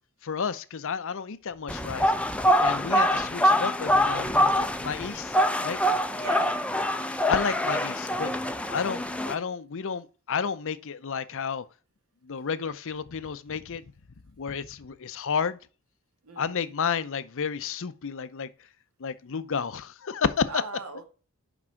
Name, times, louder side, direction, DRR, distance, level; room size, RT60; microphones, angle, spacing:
voice 1, 0.2-2.1 2.6-5.3 5.6-5.8 7.3-8.3 8.7-11.6 12.3-13.8 14.4-15.6 16.4-18.5 19.0-20.5, left 6 dB, 60° left, 0.6 m, -31 dB
sound 1, 1.7-9.3, equal, 5° left, 0.5 m, -25 dB
voice 2, 6.2-6.9 16.2-16.7 20.5-21.1, right 4 dB, 70° right, 1.7 m, -39 dB
6.1 x 5.4 x 4.5 m
head